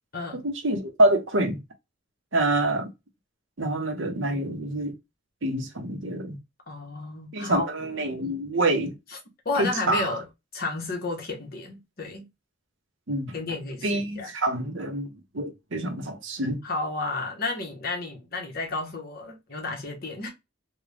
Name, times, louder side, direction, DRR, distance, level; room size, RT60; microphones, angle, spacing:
voice 1, 0.3-1.6 2.3-2.9 3.6-4.9 5.4-6.4 7.3-9.0 9.6-10.1 13.1-13.3 13.8-16.6, right 1 dB, 65° right, 0.9 m, -26 dB
voice 2, 6.7-7.7 8.0-8.4 9.4-10.3 10.5-12.3 13.3-14.3 16.6-20.3, left 3 dB, 50° left, 1.3 m, -32 dB
3.6 x 2.3 x 3.3 m
head